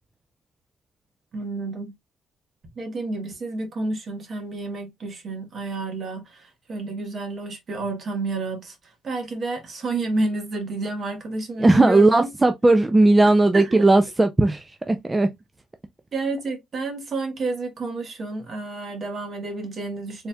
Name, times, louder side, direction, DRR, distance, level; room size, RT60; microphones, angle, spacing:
voice 1, 1.3-1.9 2.8-6.2 6.7-8.7 9.0-12.3 13.5-13.8 16.1-20.3, right 2 dB, 50° right, 1.4 m, -30 dB
voice 2, 11.6-15.3, right 2 dB, 15° right, 0.4 m, -17 dB
4.1 x 3.4 x 2.3 m
cardioid pair, 95°, 0 cm